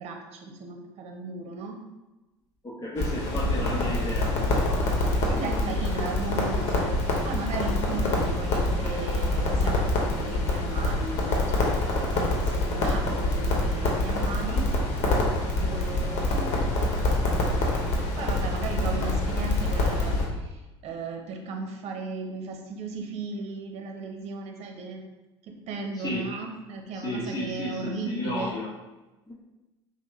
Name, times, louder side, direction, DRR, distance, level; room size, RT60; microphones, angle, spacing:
voice 1, 0.0-1.8 5.3-7.0 7.2-14.7 15.6-16.8 18.2-25.0 25.4-28.6, right 3 dB, 50° right, 3 dB, 0.8 m, -36 dB
voice 2, 2.6-5.7 25.9-26.3 26.9-28.7 29.3-29.4, left 1 dB, 25° left, -7 dB, 1.0 m, -34 dB
Crackle, 3.0-20.3, left 2 dB, 50° left, 1.1 m, -26 dB
5.3 x 2.2 x 3.2 m, 1.1 s
hypercardioid pair, 70°, 14 cm